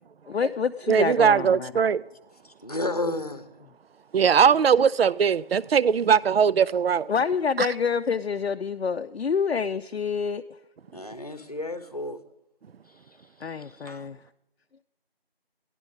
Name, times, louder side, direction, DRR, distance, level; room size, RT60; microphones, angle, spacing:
voice 1, 0.3-1.7 7.1-10.4 13.4-14.2, left 6 dB, 85° left, 0.5 m, -27 dB
voice 2, 0.9-2.0 4.1-7.1 7.6-7.7, right 7 dB, 75° right, 0.4 m, -20 dB
voice 3, 2.6-3.4 10.9-12.2 13.8-14.0, left 2 dB, 40° left, 0.9 m, -31 dB
14.0 x 10.5 x 4.0 m
figure-of-eight pair, 175°, 31 cm